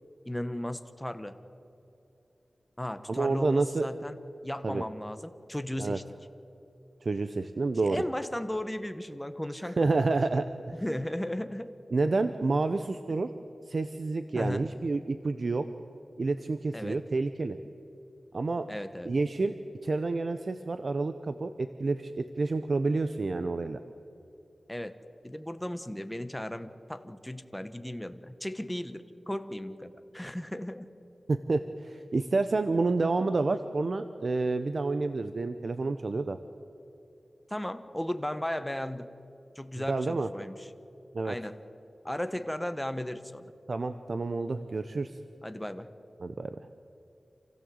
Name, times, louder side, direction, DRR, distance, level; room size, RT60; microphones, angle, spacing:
voice 1, 0.2-1.4 2.8-4.2 4.4-6.0 7.8-10.1 10.7-11.7 14.3-14.6 16.7-17.0 18.7-19.1 24.7-25.0 25.2-30.9 37.5-39.1 39.5-40.7 41.2-41.6 42.0-43.4 45.4-45.9, left 1 dB, 10° left, 10 dB, 1.3 m, -36 dB
voice 2, 3.1-3.9 4.6-4.8 5.8-6.0 7.0-8.0 9.8-10.8 11.9-13.3 13.7-15.7 16.2-17.6 18.3-18.6 19.1-19.6 19.8-23.8 31.3-36.4 39.9-40.3 41.1-41.3 43.7-45.2 46.2-46.6, right 3 dB, 60° right, 9 dB, 0.8 m, -29 dB
27.5 x 16.0 x 8.0 m, 2.8 s
wide cardioid pair, 70°, 0 cm